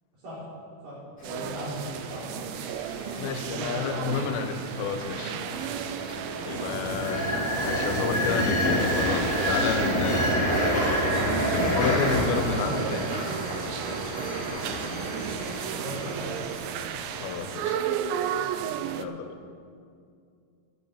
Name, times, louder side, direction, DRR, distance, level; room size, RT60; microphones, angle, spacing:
voice 1, 0.8-1.8 2.1-2.3 3.0-3.2 3.5-4.2 8.5-8.7 12.5-12.9 15.7-16.3, equal, 60° right, -7 dB, 5.4 m, -37 dB
sound 1, 1.2-17.5, equal, 25° left, 3.1 m, -29 dB
sound 2, 1.2-19.1, right 10 dB, 85° right, 2.4 m, -34 dB
voice 2, 3.2-5.4 6.4-7.3 7.6-10.4 11.5-13.1 17.2-17.8 19.0-19.4, left 5 dB, 90° left, 7 dB, 2.7 m, -30 dB
10.5 x 10.5 x 7.0 m, 2.3 s
omnidirectional pair, 4.3 m